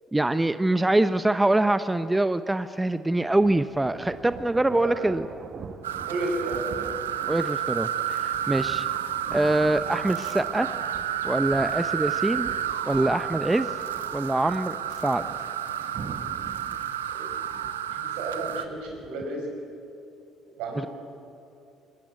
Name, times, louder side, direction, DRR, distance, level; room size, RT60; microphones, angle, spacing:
voice 1, 0.1-5.3 7.3-8.9 9.3-10.7 11.2-12.5 12.8-13.7 14.1-14.8 15.0-15.3, right 2 dB, 15° right, 12 dB, 0.9 m, -24 dB
sound 1, 3.2-19.1, right 5 dB, 50° right, 1.6 m, -44 dB
voice 2, 4.6-5.1 6.1-6.9 17.1-17.3 17.9-19.5 20.6-20.9, right 2 dB, 75° right, 2 dB, 5.0 m, -33 dB
sound 2, 5.8-18.7, right 10 dB, 90° right, 0.8 m, -31 dB
22.5 x 20.5 x 9.5 m, 2.8 s
hypercardioid pair, 55°, 0 cm